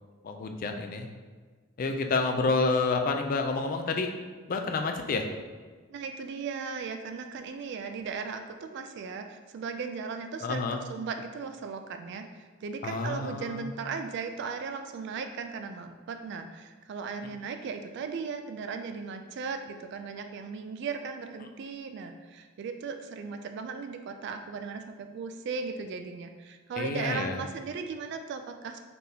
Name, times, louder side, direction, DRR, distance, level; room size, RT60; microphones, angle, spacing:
voice 1, 0.2-1.1 1.8-4.1 4.5-5.3 10.4-10.8 12.8-13.7 26.8-27.4, left 3 dB, 45° left, 5 dB, 0.4 m, -29 dB
voice 2, 5.9-28.8, right 5 dB, 60° right, 7 dB, 0.3 m, -37 dB
4.2 x 3.4 x 2.7 m, 1.5 s
head